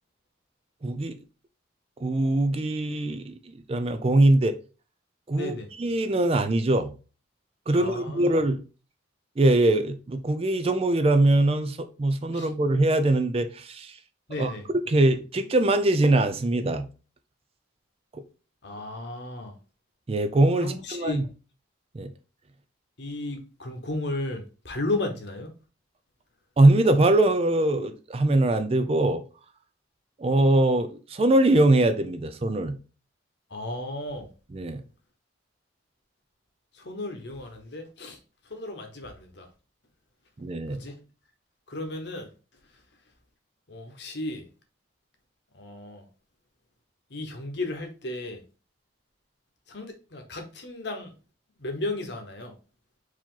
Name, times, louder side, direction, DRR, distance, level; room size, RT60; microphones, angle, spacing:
voice 1, 0.8-1.2 2.0-3.3 3.7-4.6 5.3-5.5 5.8-6.9 7.7-8.6 9.4-14.0 14.4-14.5 14.9-16.9 18.1-18.2 20.1-21.2 21.9-22.1 26.6-29.2 30.2-32.7 34.5-34.8 40.4-40.8, right 2 dB, 30° right, 0.4 m, -22 dB
voice 2, 5.4-5.7 7.7-8.3 12.3-12.5 14.3-14.7 18.6-19.6 20.5-21.2 23.0-25.5 33.5-34.3 36.7-38.2 38.4-39.5 40.7-41.0 41.7-42.3 42.7-42.8 43.7-44.5 45.5-46.1 47.1-48.4 49.7-51.1 51.6-52.6, left 2 dB, 55° left, 1.0 m, -34 dB
4.8 x 2.9 x 3.8 m
head